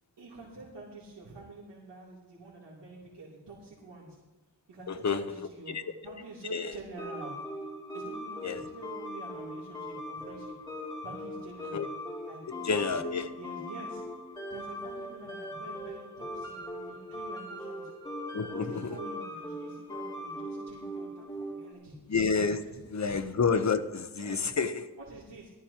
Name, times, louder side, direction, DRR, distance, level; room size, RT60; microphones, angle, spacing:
voice 1, 0.2-4.2 4.7-7.3 7.9-10.6 11.0-11.9 12.3-13.1 13.4-14.0 14.5-17.9 18.5-22.0 22.6-22.8 23.0-23.1 24.1-24.5 25.0-25.5, right 3 dB, 85° right, -7 dB, 3.2 m, -47 dB
voice 2, 4.9-5.4 5.7-5.8 6.5-6.7 8.4-8.6 11.7-11.9 12.5-13.3 18.3-19.0 22.1-22.6 22.9-25.0, left 5 dB, 40° left, 9 dB, 0.9 m, -29 dB
sound 1, 7.0-21.7, left 1 dB, 10° left, 2.8 m, -40 dB
18.0 x 13.5 x 2.9 m, 1.1 s
wide cardioid pair, 80°, 41 cm